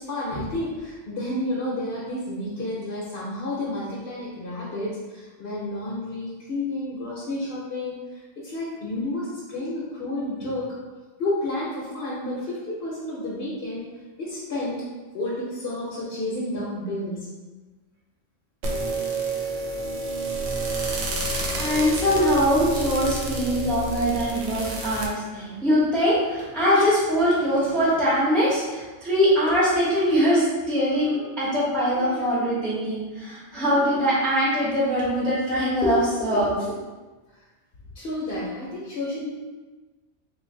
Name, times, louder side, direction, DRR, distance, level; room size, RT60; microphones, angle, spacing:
voice 1, 0.0-10.7 11.2-13.8 14.2-14.9 15.1-17.3 37.9-39.3, left 1 dB, 55° left, -7 dB, 1.0 m, -30 dB
sound 1, 18.6-25.1, right 2 dB, 80° right, 1.0 m, -29 dB
voice 2, 21.5-36.7, equal, ahead, -8 dB, 0.8 m, -22 dB
2.8 x 2.5 x 3.8 m, 1.2 s
omnidirectional pair, 1.3 m